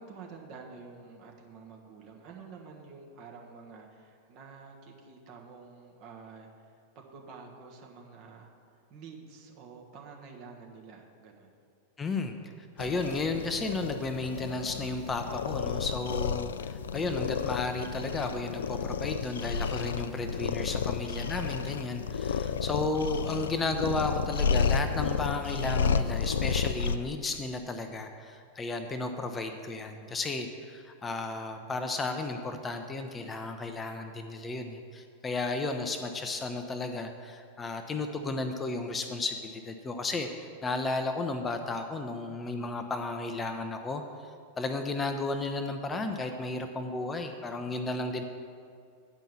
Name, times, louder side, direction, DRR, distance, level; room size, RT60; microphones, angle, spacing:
voice 1, 0.0-8.5 8.9-11.5 22.4-22.7, right 4 dB, 40° right, 0 dB, 1.4 m, -49 dB
voice 2, 12.0-44.0 44.6-48.2, left 3 dB, 15° left, 6 dB, 0.6 m, -33 dB
sound 1, 12.8-27.0, left 6 dB, 65° left, 0.3 m, -31 dB
9.1 x 5.4 x 7.0 m, 2.3 s
figure-of-eight pair, 90°, 0 cm